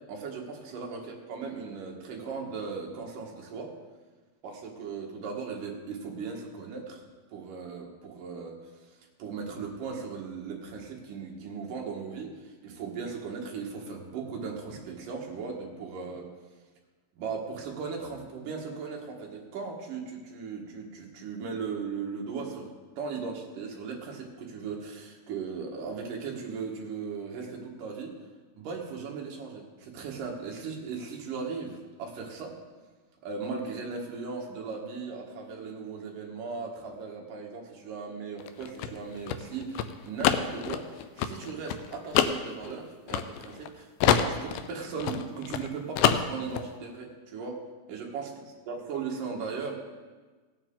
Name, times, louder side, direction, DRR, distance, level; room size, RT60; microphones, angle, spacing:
voice 1, 0.1-3.7 4.4-7.0 7.3-8.6 9.2-16.3 17.2-28.1 28.6-32.5 33.2-47.6 47.9-48.3 48.7-49.7, right 5 dB, 65° right, 0 dB, 3.0 m, -37 dB
sound 1, 38.4-43.7 44.0-45.7 46.0-46.7, left 10 dB, 80° left, 2.3 m, -26 dB
17.5 x 9.1 x 3.8 m, 1.3 s
omnidirectional pair, 4.4 m